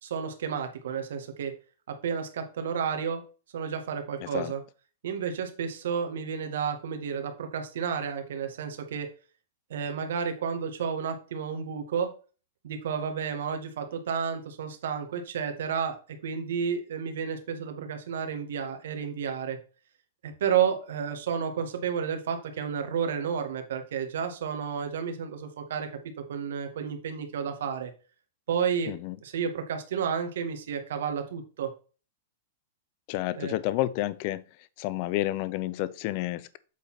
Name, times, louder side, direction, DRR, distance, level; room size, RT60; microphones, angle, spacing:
voice 1, 0.0-1.5 1.9-3.2 3.5-4.6 5.0-9.1 9.7-12.1 12.6-16.0 16.2-19.6 20.2-25.9 26.3-27.9 28.5-28.9 29.2-31.7 33.3-33.5, right 7 dB, 75° right, 1.7 m, -31 dB
voice 2, 4.2-4.5 28.9-29.2 33.1-34.4 34.8-36.6, left 16 dB, 45° left, 0.4 m, -30 dB
8.2 x 4.1 x 4.2 m
hypercardioid pair, 140°, 0 cm